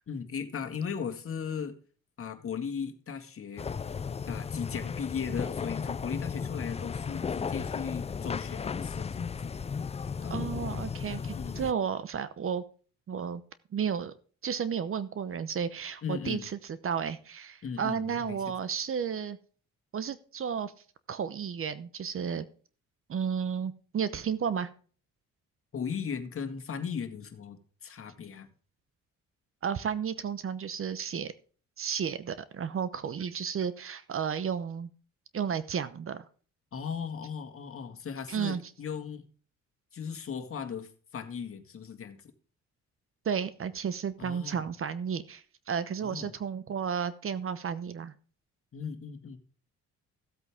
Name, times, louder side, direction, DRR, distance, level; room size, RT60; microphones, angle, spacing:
voice 1, 0.1-1.8 2.2-3.6 4.3-9.5 10.2-10.4 11.3-11.6 16.0-16.5 17.6-18.4 25.7-27.6 27.8-28.5 36.7-39.2 39.9-42.2 44.2-44.6 46.0-46.3 48.7-49.4, left 6 dB, 45° left, 7 dB, 1.9 m, -37 dB
sound 1, 3.6-11.7, left 6 dB, 20° left, 0.4 m, -35 dB
voice 2, 10.3-12.6 13.1-13.4 13.7-14.1 14.4-19.4 19.9-20.7 21.1-22.5 23.1-24.7 29.6-31.3 31.8-34.9 35.3-36.3 38.3-38.6 43.2-48.1, right 7 dB, 45° right, 15 dB, 0.9 m, -33 dB
14.5 x 8.2 x 3.6 m, 0.41 s
cardioid pair, 90°, 30 cm